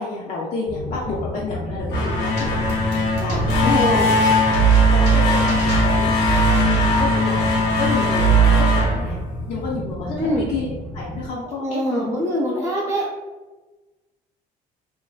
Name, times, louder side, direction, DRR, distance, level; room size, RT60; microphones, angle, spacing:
voice 1, 0.0-4.0 4.6-6.1 6.5-9.2 9.5-12.1 12.5-12.7 13.0-13.1, left 4 dB, 45° left, -5 dB, 0.5 m, -30 dB
sound 1, 0.7-11.3, left 1 dB, 55° right, 0.6 m, -31 dB
sound 2, 1.8-9.8, right 1 dB, 85° left, 0.7 m, -18 dB
sound 3, 2.4-6.5, equal, 85° right, 0.8 m, -33 dB
voice 2, 3.6-4.2 10.2-10.5 11.6-13.0, equal, 15° right, -8 dB, 0.8 m, -23 dB
2.5 x 2.1 x 2.3 m, 1.2 s
cardioid pair, 110°, 17 cm